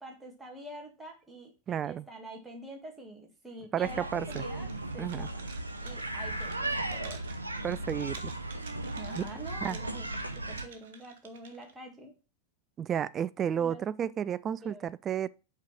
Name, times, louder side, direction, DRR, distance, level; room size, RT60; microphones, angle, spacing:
voice 1, 0.0-1.5 1.8-4.7 4.9-5.5 5.8-7.2 9.0-12.1 13.6-13.8 14.6-14.9, right 1 dB, 10° right, 2.0 m, -46 dB
voice 2, 1.7-2.0 3.7-4.4 5.0-5.3 7.6-8.3 9.2-9.3 9.6-9.8 12.8-15.3, right 9 dB, 25° right, 0.3 m, -32 dB
sound 1, 3.8-10.7, right 2 dB, 80° right, 0.7 m, -36 dB
sound 2, 4.2-11.7, right 6 dB, 55° right, 1.1 m, -52 dB
5.6 x 4.6 x 6.0 m
figure-of-eight pair, 90°, 0 cm